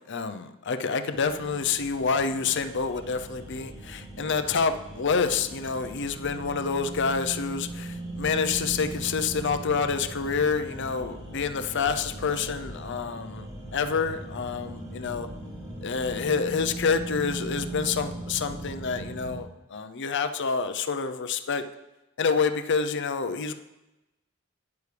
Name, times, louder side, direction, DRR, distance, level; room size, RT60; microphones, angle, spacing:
voice 1, 0.1-15.3 15.8-21.6 22.2-23.5, left 5 dB, 55° left, 9 dB, 0.6 m, -28 dB
sound 1, 1.1-19.4, right 1 dB, 15° right, 3.4 m, -39 dB
11.5 x 9.6 x 3.4 m, 1.0 s
head